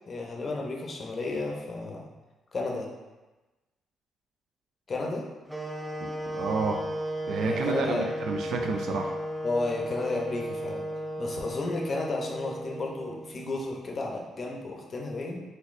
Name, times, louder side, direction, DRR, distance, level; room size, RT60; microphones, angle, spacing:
voice 1, 0.1-2.1 2.5-2.9 4.9-5.2 7.4-8.1 9.4-10.8 11.2-15.4, left 3 dB, 40° left, 0 dB, 0.6 m, -32 dB
sound 1, 5.5-13.5, equal, 5° right, 0.4 m, -35 dB
voice 2, 6.3-6.8 7.3-9.1, right 4 dB, 70° right, 3 dB, 0.3 m, -30 dB
4.0 x 2.6 x 2.5 m, 1.2 s
cardioid pair, 90°, 0 cm